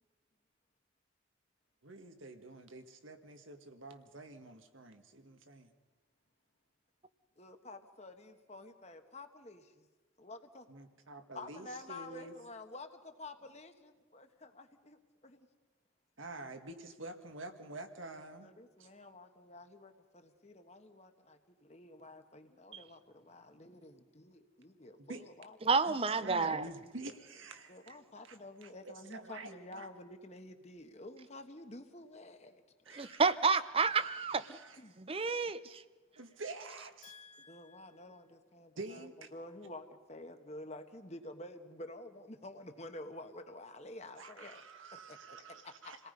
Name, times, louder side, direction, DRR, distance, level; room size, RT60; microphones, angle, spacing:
voice 1, 1.8-5.7 10.7-12.3 16.2-18.5 18.8-18.9 25.0-25.2 25.8-26.0 26.2-27.8 28.2-29.9 32.9-33.2 33.9-34.8 36.2-37.1 38.8-39.3 44.2-46.0, right 2 dB, 75° right, 1.8 m, -48 dB
voice 2, 7.4-9.9 10.2-10.6 11.3-15.5 18.4-25.6 26.2-26.4 27.7-32.5 32.9-33.2 34.8-35.0 37.0-44.6 45.1-45.9, left 2 dB, 30° left, 1.3 m, -50 dB
voice 3, 25.6-26.6 32.9-34.6 35.0-35.8, right 4 dB, 30° right, 0.6 m, -30 dB
28.0 x 18.5 x 5.4 m
head